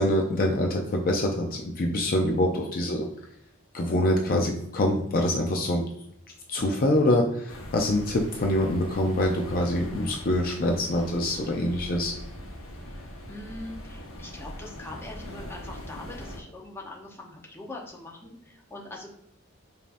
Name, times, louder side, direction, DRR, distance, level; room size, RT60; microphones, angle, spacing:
voice 1, 0.0-3.1 3.7-5.8 6.5-12.1, left 1 dB, 45° left, 2 dB, 0.5 m, -25 dB
sound 1, 7.5-16.4, left 1 dB, 75° left, 0.9 m, -41 dB
voice 2, 13.3-19.1, left 2 dB, 10° left, -2 dB, 0.9 m, -42 dB
5.1 x 2.8 x 2.5 m, 0.75 s
head